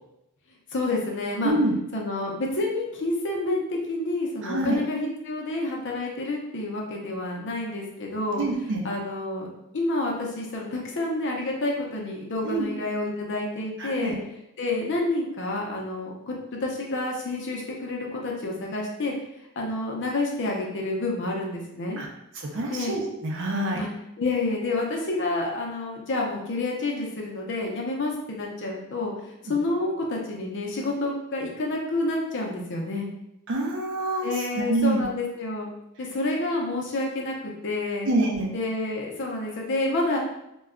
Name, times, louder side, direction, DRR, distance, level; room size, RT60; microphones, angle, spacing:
voice 1, 0.7-1.5 1.9-8.4 8.8-9.5 9.7-14.2 14.6-19.1 19.6-22.0 22.7-22.9 23.8-23.9 24.2-29.1 29.4-33.1 34.2-35.7 36.0-38.1 38.5-40.2, left 2 dB, 55° left, -1 dB, 0.6 m, -29 dB
voice 2, 4.4-4.8 8.4-8.8 12.4-12.6 13.8-14.1 22.0-22.1 22.4-23.8 33.5-35.0 38.0-38.5, right 2 dB, 60° right, 1 dB, 0.5 m, -26 dB
2.2 x 2.1 x 3.6 m, 0.85 s
head